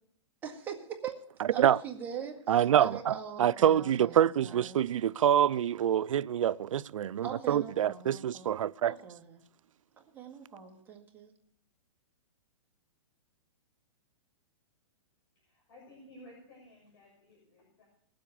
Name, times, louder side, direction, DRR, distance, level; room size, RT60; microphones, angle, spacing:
voice 1, 0.4-1.1 1.5-4.9 7.2-8.5 8.9-9.4 10.1-11.3, right 7 dB, 10° right, 1.8 m, -42 dB
voice 2, 2.5-8.9, right 10 dB, 85° right, 0.4 m, -26 dB
voice 3, 15.3-17.8, left 1 dB, 50° left, 6.5 m, -55 dB
19.5 x 7.8 x 6.9 m
hypercardioid pair, 160°, 16 cm